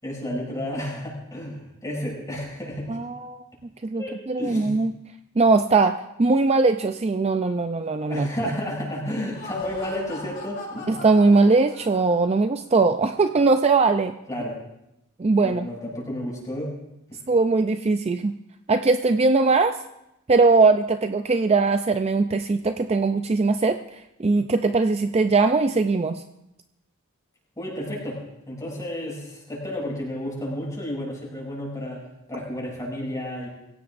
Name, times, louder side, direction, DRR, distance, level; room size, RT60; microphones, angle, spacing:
voice 1, 0.0-2.9 4.0-4.8 8.1-11.0 14.3-14.6 15.4-16.7 17.1-17.2 27.6-32.0 32.3-33.5, left 1 dB, 15° left, -4 dB, 7.2 m, -31 dB
voice 2, 2.9-3.4 3.8-4.9 5.4-8.3 10.9-14.1 15.2-15.7 17.3-18.3 18.7-19.8 20.3-26.2, right 3 dB, 30° right, 8 dB, 0.4 m, -20 dB
Laughter, 9.1-12.4, left 2 dB, 40° left, 5.7 m, -40 dB
25.0 x 16.5 x 2.6 m, 0.86 s
head